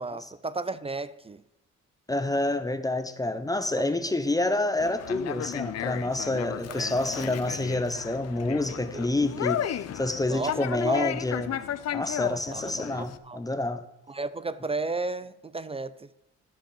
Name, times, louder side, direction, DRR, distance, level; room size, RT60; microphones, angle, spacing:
voice 1, 0.0-1.4 3.8-3.9 6.7-7.3 8.9-9.1 10.3-11.1 12.3-13.4 14.1-16.1, right 3 dB, 20° right, 0.4 m, -34 dB
voice 2, 2.1-11.5 11.9-13.8, left 2 dB, 10° left, 0.9 m, -28 dB
Conversation, 4.8-13.2, left 10 dB, 55° left, 0.7 m, -34 dB
13.0 x 5.2 x 7.0 m
cardioid pair, 90°, 30 cm